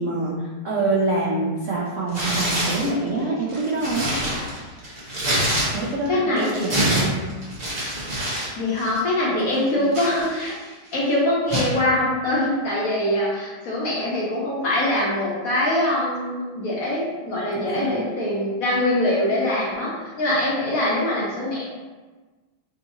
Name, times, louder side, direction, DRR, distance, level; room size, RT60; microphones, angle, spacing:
voice 1, 0.0-4.1 5.7-7.2 9.5-9.9 17.6-18.0, right 2 dB, 80° right, -5 dB, 0.6 m, -26 dB
Tearing, 2.1-2.9 3.4-6.1 6.4-8.5 8.8-9.0 9.5-10.7 11.5-11.8, right 1 dB, 35° right, 0.6 m, -26 dB
voice 2, 6.1-6.8 8.5-10.5 10.9-21.6, left 1 dB, 55° left, -5 dB, 1.1 m, -23 dB
6.4 x 2.9 x 2.7 m, 1.3 s
omnidirectional pair, 2.2 m